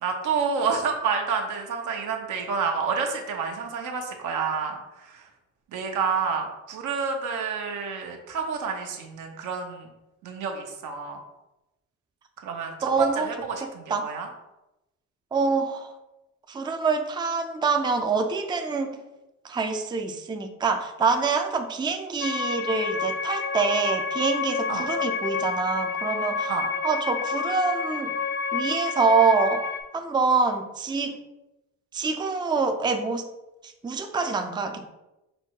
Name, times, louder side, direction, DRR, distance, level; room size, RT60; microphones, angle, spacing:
voice 1, 0.0-5.3 5.7-9.9 10.2-11.2 12.4-14.3 24.7-24.9 26.5-26.7, right 5 dB, 80° right, 2 dB, 0.9 m, -29 dB
voice 2, 12.8-13.3 13.6-14.1 15.3-15.9 16.5-19.0 19.4-26.5 26.8-28.1 28.5-29.6 29.9-31.2 31.9-33.2 33.6-34.9, right 4 dB, 15° right, 5 dB, 0.4 m, -25 dB
sound 1, 22.2-29.8, left 6 dB, 85° left, 0.7 m, -29 dB
5.3 x 2.1 x 4.5 m, 0.95 s
cardioid pair, 90°, 30 cm